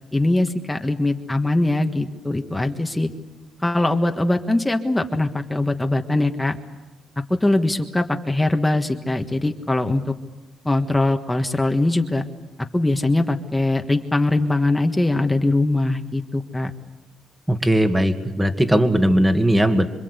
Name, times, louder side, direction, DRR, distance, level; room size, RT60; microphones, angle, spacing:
voice 1, 0.1-3.1 3.6-6.6 7.3-10.0 10.7-12.2 12.7-16.7, left 2 dB, 10° left, 5 dB, 1.6 m, -21 dB
voice 2, 17.5-19.9, equal, 10° right, 6 dB, 2.1 m, -18 dB
26.5 x 25.5 x 8.3 m, 1.1 s
cardioid pair, 90°, 0 cm